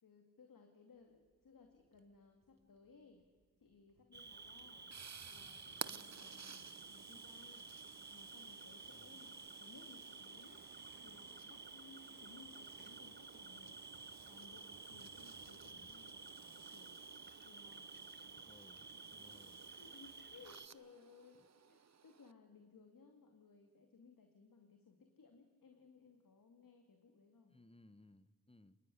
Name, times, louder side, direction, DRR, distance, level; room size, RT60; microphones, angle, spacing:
voice 1, 0.0-3.2 3.6-4.9 5.3-7.7 8.1-10.7 11.0-13.8 14.3-17.0 17.4-18.1 19.3-19.4 19.7-27.6, left 4 dB, 80° left, 4 dB, 2.5 m, -62 dB
Water tap faucet / Sink (filling or washing), 0.9-17.0, right 4 dB, 85° right, 1.9 m, -69 dB
Cricket, 4.1-20.7, right 4 dB, 30° right, 1.1 m, -53 dB
sound 1, 4.3-22.3, right 6 dB, 55° right, 0.9 m, -56 dB
voice 2, 8.9-9.2 18.4-18.8 19.1-19.6 21.4-21.5 27.5-28.8, left 2 dB, 15° left, 14 dB, 1.3 m, -64 dB
26.0 x 20.0 x 10.0 m, 1.5 s
cardioid pair, 60°, 33 cm